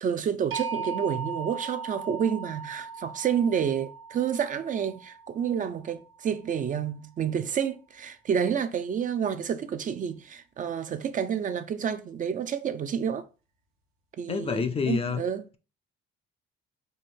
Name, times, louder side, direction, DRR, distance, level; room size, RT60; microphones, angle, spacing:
voice 1, 0.0-13.3 14.2-15.4, right 8 dB, 40° right, 0.5 m, -29 dB
sound 1, 0.5-6.5, right 5 dB, 80° right, 1.0 m, -38 dB
voice 2, 14.3-15.2, left 6 dB, 30° left, 0.4 m, -28 dB
4.2 x 2.6 x 3.6 m
cardioid pair, 105°, 21 cm